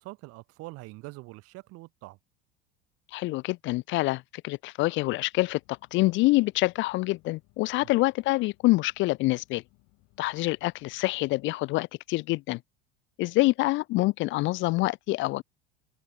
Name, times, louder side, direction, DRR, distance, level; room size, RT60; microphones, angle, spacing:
voice 1, 0.0-2.2 7.8-7.9, right 22 dB, 50° right, 1.0 m, -44 dB
voice 2, 3.1-9.6 10.2-12.6 13.2-15.4, left 20 dB, 40° left, 0.4 m, -26 dB
sound 1, 5.3-11.5, left 25 dB, 55° left, 3.9 m, -64 dB
hypercardioid pair, 75°, 32 cm